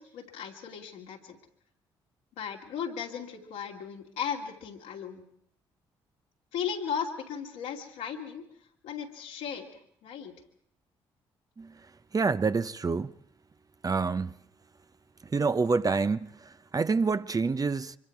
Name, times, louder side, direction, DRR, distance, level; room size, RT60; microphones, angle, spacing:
voice 1, 0.0-1.4 2.4-5.2 6.5-8.4 8.8-9.7 10.0-10.3, left 7 dB, 80° left, 2.9 m, -36 dB
voice 2, 12.1-13.1 13.8-14.3 15.2-18.0, right 4 dB, 30° right, 0.8 m, -27 dB
24.5 x 24.0 x 4.7 m
hypercardioid pair, 50°, 12 cm